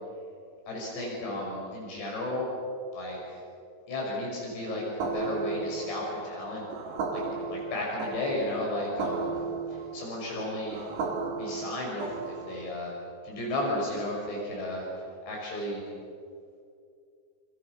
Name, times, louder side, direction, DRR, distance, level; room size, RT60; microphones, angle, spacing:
voice 1, 0.7-2.5 2.9-3.2 3.9-6.6 7.1-7.2 7.5-9.3 9.7-10.8 11.4-12.9 13.2-14.9 15.3-15.8, left 1 dB, 80° left, -2 dB, 8.0 m, -33 dB
sound 1, 5.0-12.8, right 4 dB, 70° right, 4.5 m, -35 dB
30.0 x 29.5 x 6.2 m, 2.3 s
omnidirectional pair, 5.0 m